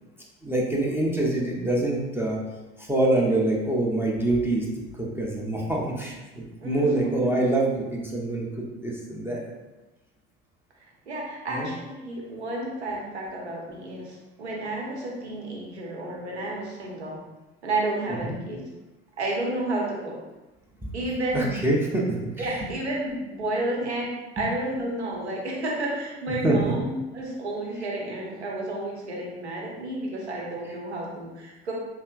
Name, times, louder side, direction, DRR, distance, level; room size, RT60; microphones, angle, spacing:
voice 1, 0.4-2.4 2.8-9.4 11.5-11.7 18.1-18.4 20.8-20.9 21.3-22.5 24.4-24.5 26.4-26.7, right 2 dB, 5° right, -3 dB, 0.7 m, -25 dB
voice 2, 6.6-7.3 11.1-17.2 17.6-18.6 19.2-20.1 20.9-21.5 22.4-31.7, right 1 dB, 90° right, -2 dB, 0.8 m, -31 dB
5.3 x 2.0 x 2.4 m, 1.1 s
hypercardioid pair, 65°, 32 cm